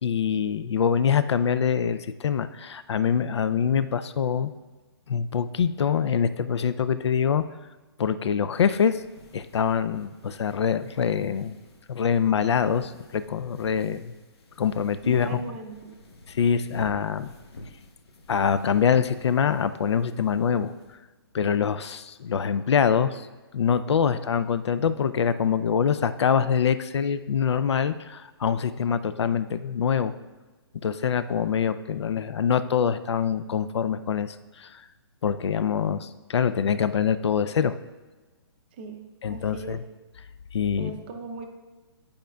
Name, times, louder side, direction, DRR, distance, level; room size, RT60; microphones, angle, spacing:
voice 1, 0.0-4.5 5.1-7.4 8.0-9.0 9.3-11.6 11.9-14.1 14.6-15.4 16.3-17.3 18.3-20.7 21.3-23.3 23.5-30.1 30.8-34.8 35.2-37.8 39.2-39.8 40.5-40.9, left 7 dB, 90° left, 13 dB, 0.4 m, -24 dB
sound 1, 8.5-21.0, left 1 dB, 70° left, 1.0 m, -50 dB
voice 2, 15.0-16.0 38.7-39.0 39.3-39.8 40.8-41.5, right 3 dB, 25° right, 4 dB, 0.5 m, -38 dB
10.5 x 5.1 x 2.3 m, 1.2 s
hypercardioid pair, 165°, 14 cm